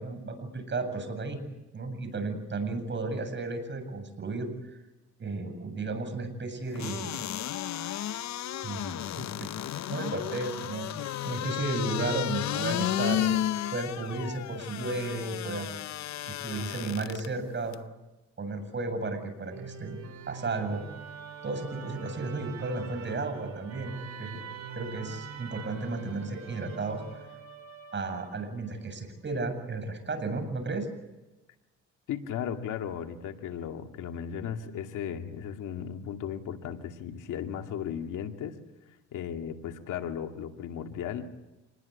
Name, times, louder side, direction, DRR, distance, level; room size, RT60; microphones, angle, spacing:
voice 1, 0.0-1.4 1.7-4.8 5.2-7.2 8.6-9.5 9.9-10.9 11.2-13.4 13.7-15.7 16.2-17.8 18.4-20.0 20.3-20.8 21.4-24.4 24.7-27.0 27.9-30.9, right 3 dB, 40° right, 8 dB, 7.9 m, -34 dB
sound 1, 6.8-17.3 17.7-17.8, left 12 dB, 65° left, 0.8 m, -33 dB
Musical instrument, 19.5-28.7, right 6 dB, 65° right, 3.5 m, -44 dB
voice 2, 32.1-38.6 39.1-41.2, left 8 dB, 85° left, 5 dB, 2.4 m, -36 dB
27.5 x 20.5 x 8.4 m, 1.0 s
cardioid pair, 90°, 30 cm